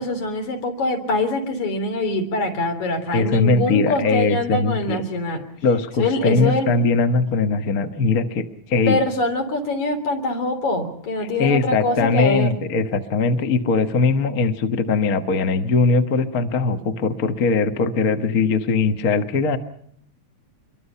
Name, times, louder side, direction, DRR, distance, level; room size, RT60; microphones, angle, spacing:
voice 1, 0.0-5.4 6.0-6.7 8.9-12.6, left 2 dB, 65° left, 5 dB, 4.5 m, -24 dB
voice 2, 3.1-5.0 5.6-9.0 11.4-19.6, left 4 dB, 50° left, 7 dB, 1.1 m, -20 dB
26.0 x 23.0 x 5.6 m, 0.66 s
omnidirectional pair, 3.6 m